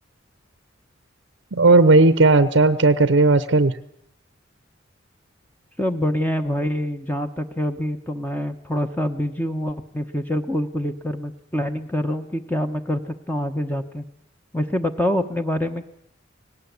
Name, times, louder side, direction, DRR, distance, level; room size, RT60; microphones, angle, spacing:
voice 1, 1.5-3.7, right 3 dB, 70° right, 13 dB, 0.8 m, -15 dB
voice 2, 5.8-14.0 14.5-15.9, equal, 10° left, 6 dB, 1.1 m, -25 dB
19.0 x 18.0 x 8.3 m, 0.72 s
head